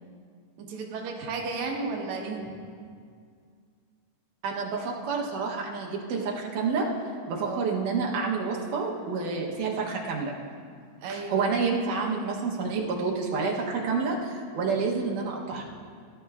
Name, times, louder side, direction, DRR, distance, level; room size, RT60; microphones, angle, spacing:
voice 1, 0.6-2.5 7.4-7.8 11.0-11.5 14.7-15.1 15.6-15.7, right 4 dB, 70° right, -1 dB, 2.4 m, -34 dB
voice 2, 4.4-6.9 7.3-10.4 11.1-15.6, right 4 dB, 90° right, -2 dB, 2.6 m, -29 dB
17.0 x 10.5 x 2.4 m, 2.1 s
omnidirectional pair, 3.5 m